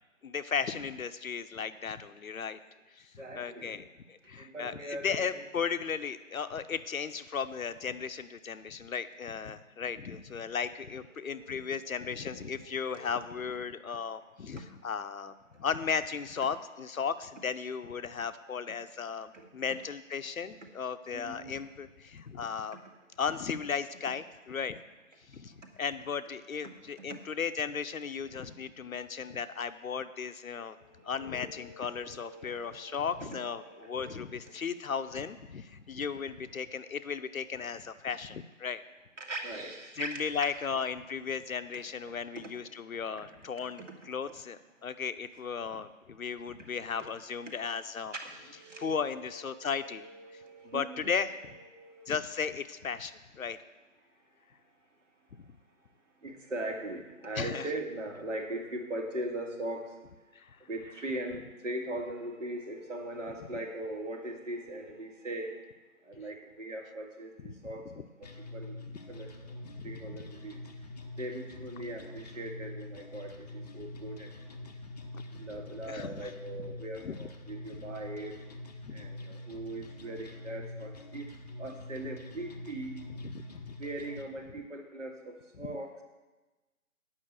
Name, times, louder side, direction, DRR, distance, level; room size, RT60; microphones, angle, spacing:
voice 1, 0.2-2.6 2.9-22.8 23.2-24.8 25.3-30.8 31.0-38.8 40.0-48.1 48.8-51.3 52.1-53.6 57.4-57.7 60.3-60.6 68.0-68.1 69.6-70.0 74.6-74.7 75.1-75.4 75.9-76.3 77.0-77.2 78.8-79.1 83.2-83.7 85.6-85.7, left 6 dB, 75° left, 12 dB, 0.8 m, -36 dB
voice 2, 3.2-3.8 4.2-5.4 11.1-13.1 19.3-19.5 21.1-21.5 30.7-34.5 39.2-40.2 41.7-41.8 46.6-46.7 47.0-47.1 47.5-47.6 48.1-52.1 56.2-60.0 60.6-65.7 66.0-67.9 68.2-68.8 69.1-69.6 69.8-70.6 71.2-74.7 75.3-78.4 78.9-81.3 81.6-83.1 83.8-85.9, right 1 dB, 60° right, 3 dB, 2.0 m, -41 dB
sound 1, 68.2-84.2, left 2 dB, 30° left, 0.7 m, -45 dB
9.0 x 5.8 x 7.9 m, 1.2 s
figure-of-eight pair, 150°, 42 cm